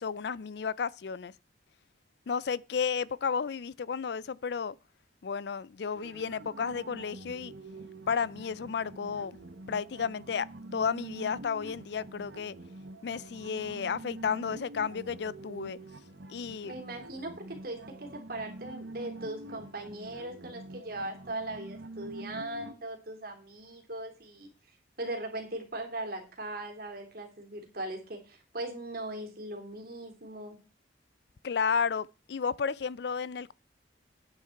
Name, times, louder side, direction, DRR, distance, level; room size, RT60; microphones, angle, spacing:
voice 1, 0.0-1.3 2.3-4.8 5.2-7.5 8.1-9.4 9.7-12.6 13.0-15.8 16.3-16.7 31.4-33.5, left 6 dB, 65° left, 0.4 m, -32 dB
sound 1, 6.0-22.7, right 2 dB, 85° right, 1.4 m, -46 dB
voice 2, 16.6-24.5 25.0-30.6, right 1 dB, 55° right, 3.1 m, -39 dB
9.8 x 9.3 x 4.5 m
head